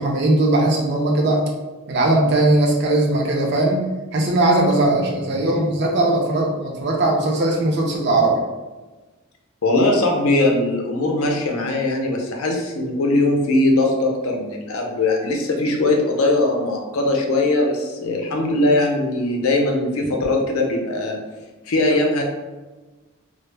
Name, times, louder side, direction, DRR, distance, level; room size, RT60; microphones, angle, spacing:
voice 1, 0.0-1.4 1.9-8.4, right 2 dB, 50° right, 0 dB, 0.5 m, -19 dB
voice 2, 9.6-21.2 21.7-22.2, left 2 dB, 85° left, 1 dB, 0.5 m, -20 dB
2.1 x 2.0 x 3.2 m, 1.2 s
head